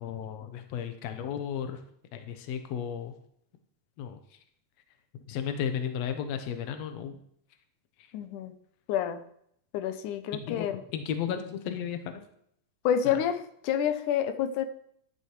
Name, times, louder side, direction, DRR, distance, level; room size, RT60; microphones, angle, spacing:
voice 1, 0.0-1.8 2.1-3.1 4.0-4.2 5.2-7.2 8.0-8.1 10.3-10.7 10.9-12.2 13.1-13.2, left 8 dB, 70° left, 7 dB, 2.1 m, -34 dB
voice 2, 8.1-8.5 8.9-9.2 9.7-10.8 12.8-14.7, left 9 dB, 90° left, 10 dB, 2.3 m, -28 dB
12.5 x 11.0 x 3.2 m, 0.69 s
omnidirectional pair, 3.5 m